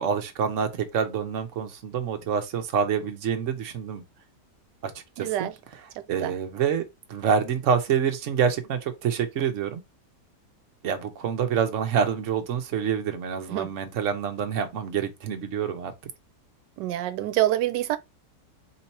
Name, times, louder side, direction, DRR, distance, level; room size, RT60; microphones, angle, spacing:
voice 1, 0.0-4.0 4.8-4.9 5.2-5.5 6.1-9.8 10.8-15.9, right 7 dB, 55° right, 1.0 m, -27 dB
voice 2, 5.2-5.5 6.2-6.3 13.5-13.7 16.8-18.0, right 14 dB, 85° right, 1.2 m, -26 dB
3.8 x 2.9 x 4.1 m
omnidirectional pair, 1.8 m